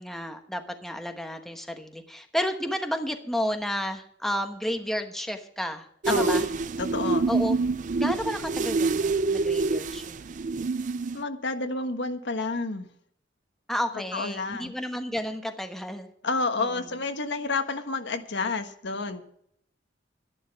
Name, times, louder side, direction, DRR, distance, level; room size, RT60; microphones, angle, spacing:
voice 1, 0.0-6.4 7.3-7.6 8.0-10.2 13.7-16.1 16.6-16.7, equal, ahead, 5 dB, 1.1 m, -31 dB
sound 1, 6.0-11.2, right 3 dB, 45° right, 0.4 m, -26 dB
voice 2, 6.1-6.5 6.8-7.3 11.1-12.9 14.1-14.7 16.2-19.2, left 3 dB, 65° left, 7 dB, 1.3 m, -30 dB
12.0 x 11.0 x 5.7 m, 0.67 s
head